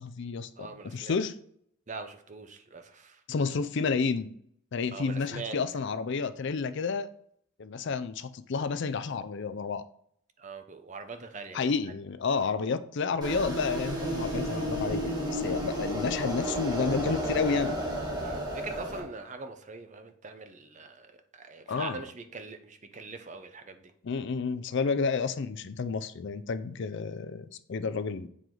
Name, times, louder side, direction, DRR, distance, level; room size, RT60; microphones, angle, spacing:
voice 1, 0.0-1.3 3.3-4.4 4.7-7.1 7.6-9.8 11.5-17.8 21.7-22.0 24.0-28.3, left 5 dB, 60° left, 12 dB, 0.4 m, -30 dB
voice 2, 0.6-1.2 1.9-3.2 4.9-5.6 10.4-11.7 15.8-16.0 18.2-23.9, right 4 dB, 35° right, 8 dB, 0.7 m, -43 dB
sound 1, 13.2-19.0, equal, 20° right, 2.0 m, -32 dB
7.6 x 5.0 x 3.8 m, 0.67 s
head